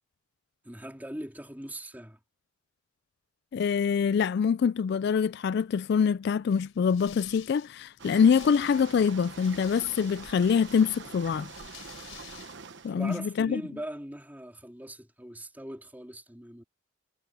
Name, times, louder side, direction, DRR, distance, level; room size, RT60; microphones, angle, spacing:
voice 1, 0.6-2.2 12.9-16.6, right 1 dB, 10° right, 3.7 m, -40 dB
voice 2, 3.5-11.5 12.8-13.6, left 6 dB, 55° left, 0.3 m, -25 dB
sound 1, 6.5-12.6, left 10 dB, 90° left, 3.6 m, -51 dB
sound 2, 8.0-12.9, right 5 dB, 60° right, 1.1 m, -45 dB
head